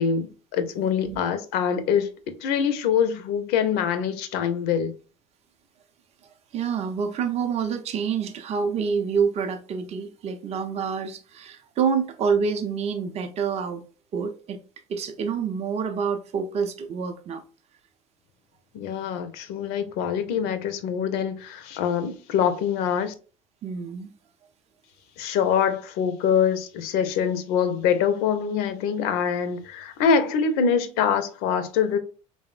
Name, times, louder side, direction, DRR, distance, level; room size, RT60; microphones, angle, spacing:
voice 1, 0.0-4.9 18.7-23.1 25.2-32.0, left 7 dB, 65° left, 0.5 m, -24 dB
voice 2, 6.5-13.8 14.1-14.6 14.9-17.4 23.6-24.1, right 6 dB, 40° right, 0.5 m, -27 dB
3.0 x 2.0 x 2.3 m
hypercardioid pair, 80°, 18 cm